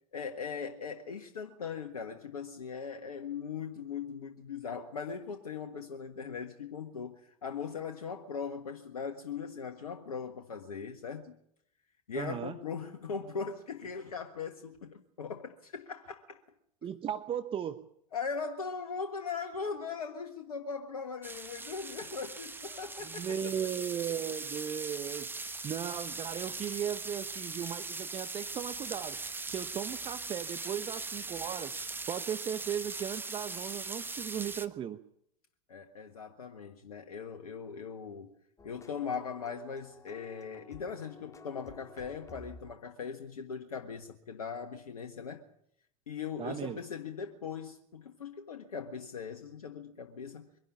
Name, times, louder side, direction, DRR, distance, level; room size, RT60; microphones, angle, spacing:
voice 1, 0.1-11.3 12.1-16.4 18.1-23.4 35.7-38.3 38.6-45.4 46.1-50.5, left 6 dB, 80° left, 1.6 m, -40 dB
voice 2, 12.1-12.6 16.8-17.9 23.0-25.3 25.6-31.8 32.1-35.0 46.4-46.8, right 9 dB, 30° right, 1.0 m, -37 dB
sound 1, 21.2-34.7, right 3 dB, 10° right, 1.3 m, -40 dB
sound 2, 38.6-43.0, left 3 dB, 15° left, 1.8 m, -53 dB
23.5 x 11.5 x 9.8 m
hypercardioid pair, 90°, 19 cm